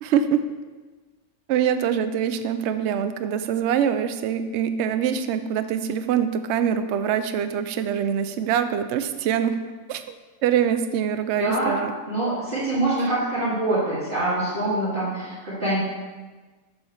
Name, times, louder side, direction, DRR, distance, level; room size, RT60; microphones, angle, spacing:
voice 1, 0.0-0.4 1.5-9.6 9.9-11.9, right 8 dB, 65° right, 10 dB, 0.7 m, -24 dB
voice 2, 11.4-11.8 12.1-15.8, right 2 dB, 35° right, -11 dB, 2.2 m, -25 dB
7.2 x 4.4 x 6.4 m, 1.3 s
omnidirectional pair, 1.5 m